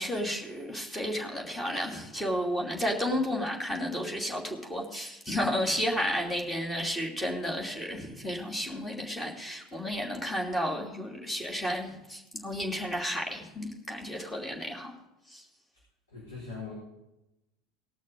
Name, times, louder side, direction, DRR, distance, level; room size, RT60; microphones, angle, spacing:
voice 1, 0.0-14.9 15.3-15.4, equal, 10° left, 0 dB, 2.7 m, -32 dB
voice 2, 16.1-16.7, left 5 dB, 75° left, -7 dB, 4.5 m, -40 dB
18.5 x 6.4 x 5.2 m, 0.91 s
figure-of-eight pair, 75°, 0 cm